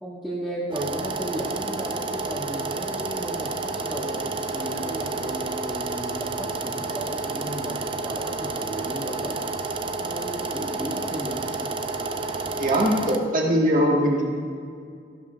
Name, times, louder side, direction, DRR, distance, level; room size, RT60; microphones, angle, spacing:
voice 1, 0.0-9.4 10.0-11.5, equal, 5° right, -11 dB, 1.9 m, -34 dB
sound 1, 0.7-13.2, right 3 dB, 30° right, 0.5 m, -30 dB
voice 2, 12.6-14.2, equal, 45° right, -2 dB, 1.5 m, -21 dB
14.5 x 12.0 x 2.4 m, 2.3 s
head